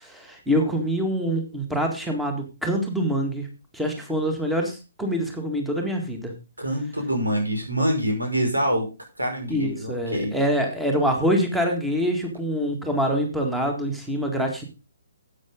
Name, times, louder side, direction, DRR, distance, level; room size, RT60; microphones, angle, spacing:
voice 1, 0.0-3.5 3.7-6.3 9.5-14.6, equal, 5° right, 3 dB, 2.0 m, -25 dB
voice 2, 6.6-8.9 9.2-10.4, equal, 75° right, 3 dB, 5.4 m, -25 dB
12.5 x 8.6 x 3.7 m, 0.29 s
figure-of-eight pair, 135°, 0 cm